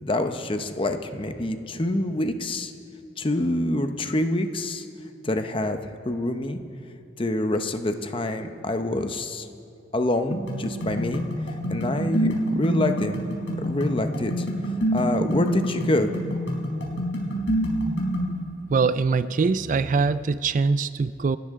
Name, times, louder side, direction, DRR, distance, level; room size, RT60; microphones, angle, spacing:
voice 1, 0.0-2.7 3.2-4.9 5.2-5.8 6.0-6.6 7.2-9.5 9.9-11.2 11.7-13.3 13.6-14.5 14.9-16.1, left 1 dB, 30° left, 7 dB, 0.8 m, -26 dB
sound 1, 10.3-18.3, equal, 85° left, 3.8 m, -27 dB
voice 2, 18.7-21.4, right 4 dB, 45° right, 15 dB, 0.3 m, -23 dB
29.5 x 13.0 x 3.7 m, 2.5 s
head